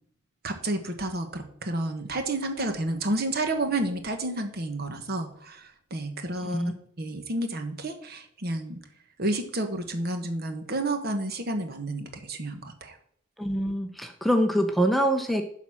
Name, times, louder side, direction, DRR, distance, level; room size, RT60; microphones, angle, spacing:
voice 1, 0.4-8.8 9.2-12.9, right 2 dB, 50° right, 6 dB, 1.3 m, -30 dB
voice 2, 6.4-6.7 13.4-15.4, equal, ahead, 5 dB, 0.6 m, -24 dB
11.5 x 4.1 x 6.2 m, 0.64 s
head